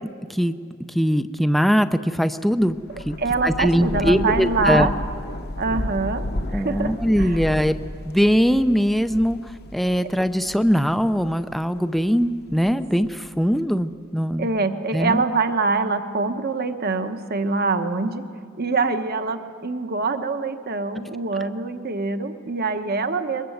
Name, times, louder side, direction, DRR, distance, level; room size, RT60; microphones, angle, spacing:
voice 1, 0.9-2.8 3.1-3.2 3.4-4.9 6.5-7.8 8.1-14.5 14.9-15.2, equal, ahead, 10 dB, 0.5 m, -21 dB
Thunder / Rain, 2.6-11.5 12.1-13.4, left 1 dB, 50° left, 1.1 m, -32 dB
voice 2, 3.2-4.9 5.6-7.3 14.4-18.2 18.6-23.4, right 3 dB, 45° right, 8 dB, 1.1 m, -24 dB
22.0 x 21.5 x 7.9 m, 2.1 s
head